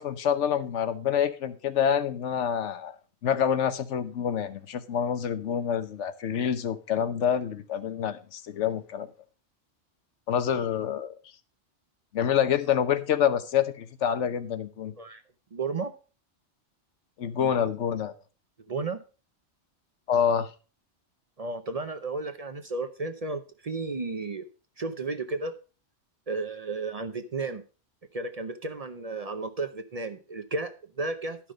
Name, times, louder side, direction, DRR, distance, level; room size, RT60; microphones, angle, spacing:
voice 1, 0.0-2.9 3.2-9.1 10.3-11.1 12.1-14.9 17.2-18.1 20.1-20.5, left 8 dB, 90° left, 12 dB, 1.2 m, -27 dB
voice 2, 15.5-15.9 17.4-17.5 18.7-19.0 21.4-24.4 24.8-25.6 26.3-27.6 28.1-31.4, right 3 dB, 40° right, 9 dB, 0.7 m, -33 dB
11.5 x 5.9 x 5.1 m, 0.35 s
omnidirectional pair, 1.2 m